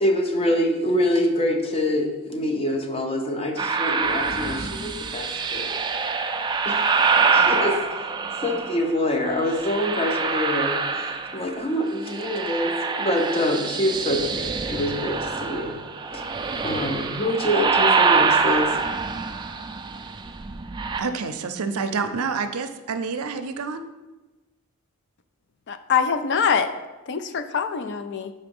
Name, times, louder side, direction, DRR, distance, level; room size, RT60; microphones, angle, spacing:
voice 1, 0.0-5.8 6.7-6.8 7.3-8.1 8.4-15.8 16.1-16.2 16.6-18.8, left 1 dB, 25° left, 4 dB, 0.7 m, -25 dB
sound 1, 3.6-8.9 9.4-11.7 11.9-21.0, right 5 dB, 20° right, 0.3 m, -25 dB
voice 2, 21.0-23.8, right 5 dB, 80° right, 8 dB, 0.5 m, -28 dB
voice 3, 25.7-26.7 27.1-28.3, left 6 dB, 55° left, 10 dB, 0.4 m, -24 dB
5.7 x 4.1 x 5.3 m, 1.2 s
head